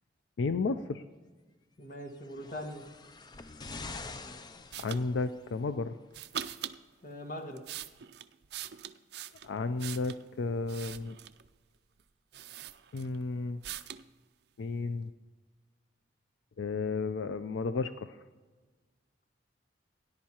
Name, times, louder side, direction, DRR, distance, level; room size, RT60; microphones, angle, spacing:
voice 1, 0.4-1.0 4.8-6.0 9.4-11.2 12.9-13.6 14.6-15.1 16.6-18.2, left 3 dB, 85° left, 11 dB, 0.4 m, -33 dB
voice 2, 1.8-2.9 7.0-7.6, left 1 dB, 45° left, 2 dB, 1.4 m, -41 dB
sound 1, 2.2-5.5 6.5-6.6, left 3 dB, 20° left, 0.4 m, -45 dB
sound 2, 4.7-5.0 6.1-6.8 7.4-10.2 10.7-11.5 12.0-12.1 12.3-13.2 13.6-14.1, right 10 dB, 60° right, 0.4 m, -42 dB
18.0 x 10.5 x 2.9 m, 1.3 s
head